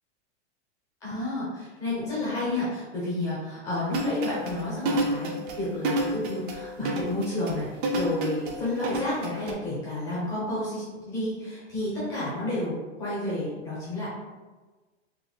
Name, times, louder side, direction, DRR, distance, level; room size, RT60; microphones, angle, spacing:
voice 1, 1.0-14.1, left 1 dB, 10° left, -8 dB, 0.4 m, -31 dB
sound 1, 3.9-9.5, right 1 dB, 45° right, 0.5 m, -29 dB
3.4 x 2.1 x 3.8 m, 1.3 s
supercardioid pair, 170°, 35 cm